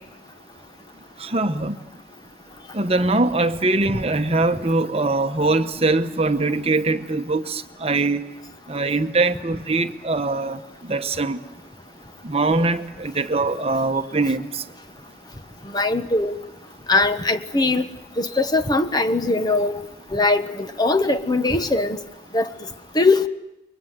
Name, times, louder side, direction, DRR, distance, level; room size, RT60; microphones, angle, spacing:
voice 1, 1.2-1.8 2.7-8.3 8.7-11.4 12.2-14.6, right 2 dB, 35° right, 1.1 m, -22 dB
voice 2, 15.7-16.3 16.9-17.8 18.2-19.8 20.1-22.0 22.3-22.5 22.9-23.3, left 2 dB, 25° left, 1.1 m, -20 dB
29.5 x 24.0 x 7.5 m
head